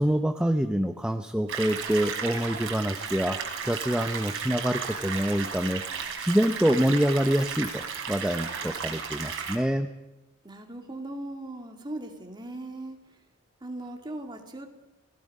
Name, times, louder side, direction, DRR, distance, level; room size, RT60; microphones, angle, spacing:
voice 1, 0.0-3.4 3.6-9.9, equal, 5° right, 6 dB, 0.7 m, -26 dB
sound 1, 1.5-9.6, right 6 dB, 65° right, 3.4 m, -34 dB
voice 2, 10.4-13.0 13.6-14.7, right 1 dB, 20° right, 3 dB, 2.4 m, -38 dB
30.0 x 16.5 x 5.4 m, 0.98 s
head